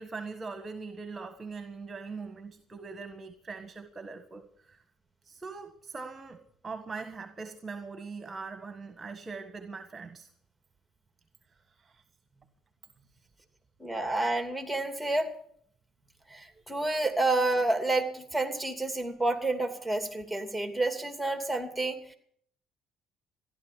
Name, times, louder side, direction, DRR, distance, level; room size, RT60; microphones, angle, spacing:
voice 1, 0.0-4.8 5.2-10.3 11.7-12.0, right 4 dB, 30° right, 1.6 m, -41 dB
voice 2, 13.8-15.3 16.3-22.2, right 2 dB, ahead, 2.9 m, -29 dB
15.0 x 11.5 x 7.4 m
hypercardioid pair, 65°, 0 cm